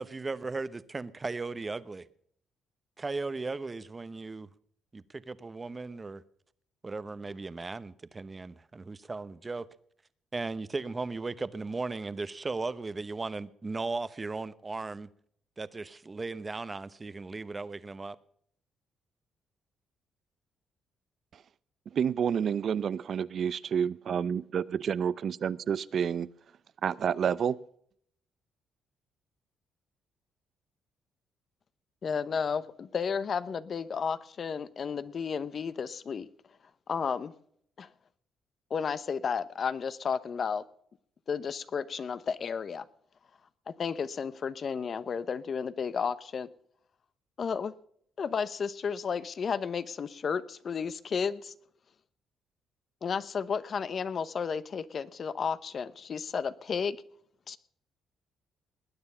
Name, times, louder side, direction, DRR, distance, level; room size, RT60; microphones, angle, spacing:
voice 1, 0.0-2.1 3.0-4.5 4.9-6.2 6.8-9.7 10.3-15.1 15.6-18.2, right 3 dB, 25° right, 0.9 m, -36 dB
voice 2, 21.9-26.3 26.8-27.6, right 7 dB, 55° right, 0.6 m, -29 dB
voice 3, 32.0-36.3 36.9-37.3 37.8-37.9 38.7-40.6 41.3-42.8 43.7-46.5 47.4-47.7 48.2-51.5 53.0-57.0 57.5-57.6, left 6 dB, 50° left, 0.9 m, -32 dB
20.0 x 9.5 x 5.6 m
cardioid pair, 90°, 0 cm